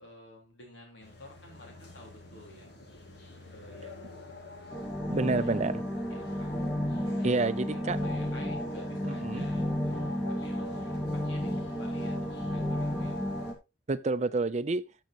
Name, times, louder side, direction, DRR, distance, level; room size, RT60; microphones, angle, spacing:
voice 1, 0.0-2.7 3.5-4.2 5.1-5.5 6.1-6.6 7.1-10.9 11.1-13.2, left 1 dB, 75° left, 4.2 m, -51 dB
sound 1, 1.0-13.5, left 2 dB, 60° left, 2.6 m, -46 dB
sound 2, 4.7-13.5, equal, 10° left, 1.1 m, -32 dB
voice 2, 5.1-5.8 7.2-8.1 9.0-9.5 13.9-14.8, right 3 dB, 35° right, 0.5 m, -29 dB
13.5 x 6.3 x 3.0 m
head